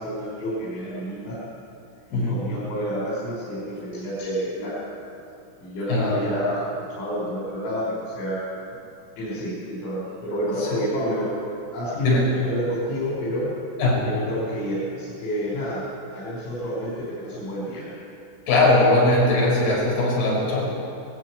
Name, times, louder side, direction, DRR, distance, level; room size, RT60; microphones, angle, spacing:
voice 1, 0.0-1.4 2.1-4.7 5.6-6.7 7.0-8.4 9.2-11.3 11.7-13.5 14.0-15.8 16.1-17.9, equal, 80° left, -8 dB, 7.5 m, -29 dB
voice 2, 2.1-2.4 5.9-6.2 10.6-10.8 12.0-12.3 13.8-14.1 18.5-20.8, left 2 dB, 50° left, -4 dB, 7.6 m, -20 dB
20.0 x 14.5 x 9.9 m, 2.7 s
omnidirectional pair, 5.8 m